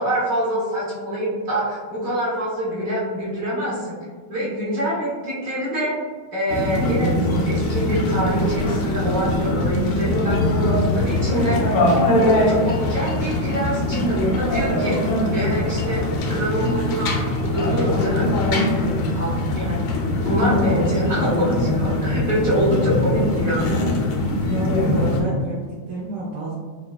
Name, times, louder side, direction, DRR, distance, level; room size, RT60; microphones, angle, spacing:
voice 1, 0.0-3.9 4.3-6.0 6.3-7.1 7.5-11.8 12.1-17.1 17.4-18.3 18.7-19.8 20.2-23.7, equal, 50° right, -7 dB, 1.2 m, -25 dB
sound 1, 6.5-25.2, left 1 dB, 70° left, 1.1 m, -22 dB
voice 2, 24.3-26.5, right 2 dB, 70° right, -7 dB, 1.2 m, -29 dB
5.5 x 2.2 x 2.2 m, 1.5 s
omnidirectional pair, 2.3 m